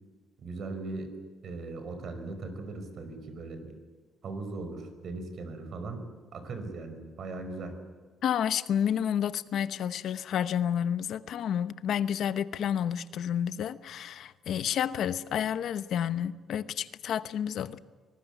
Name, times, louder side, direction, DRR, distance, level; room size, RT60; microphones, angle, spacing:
voice 1, 0.4-1.1 1.4-3.7 4.2-7.8, right 3 dB, 55° right, 5.2 m, -39 dB
voice 2, 8.2-17.8, left 9 dB, 65° left, 0.9 m, -30 dB
25.0 x 19.5 x 8.3 m
cardioid pair, 140°, 0 cm